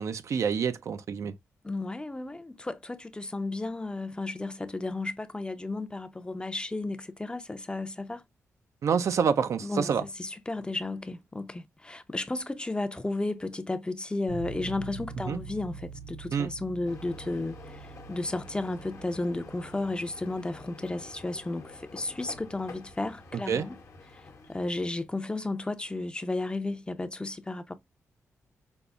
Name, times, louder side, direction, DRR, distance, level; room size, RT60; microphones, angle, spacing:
voice 1, 0.0-1.4 8.8-10.0 15.3-15.4 16.3-16.5 23.5-23.7, right 6 dB, 65° right, 0.4 m, -27 dB
voice 2, 1.6-8.2 9.6-9.9 10.2-23.8 24.5-27.7, left 2 dB, 15° left, 0.5 m, -33 dB
sound 1, 14.3-25.1, right 4 dB, 85° right, 1.2 m, -46 dB
sound 2, 16.8-24.6, left 4 dB, 65° left, 0.9 m, -48 dB
5.1 x 2.0 x 2.3 m
cardioid pair, 70°, 6 cm